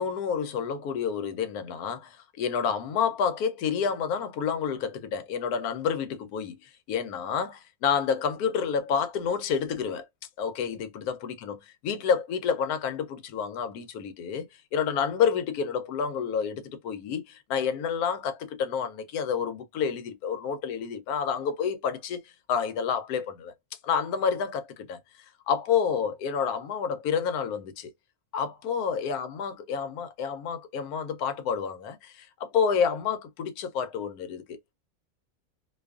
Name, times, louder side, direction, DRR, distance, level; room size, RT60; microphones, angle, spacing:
voice 1, 0.0-10.1 10.4-11.6 11.8-14.5 14.7-23.5 23.8-25.0 25.5-27.9 28.3-34.6, left 7 dB, 80° left, 1.1 m, -29 dB
2.6 x 2.4 x 2.3 m
omnidirectional pair, 1.6 m